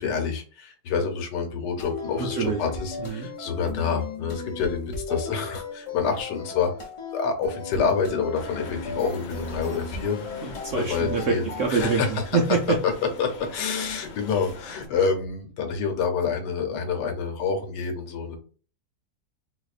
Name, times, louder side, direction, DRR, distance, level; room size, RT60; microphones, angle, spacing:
voice 1, 0.0-6.7 7.1-12.2 12.8-12.9 13.2-18.4, left 5 dB, 75° left, 4 dB, 1.4 m, -28 dB
sound 1, 1.8-12.0, left 4 dB, 40° left, 0.4 m, -36 dB
voice 2, 2.2-2.6 3.0-3.3 10.4-12.8, right 5 dB, 70° right, 1 dB, 0.7 m, -25 dB
sound 2, 8.3-14.9, left 3 dB, 60° left, 1.1 m, -42 dB
4.1 x 2.6 x 2.4 m, 0.38 s
omnidirectional pair, 1.8 m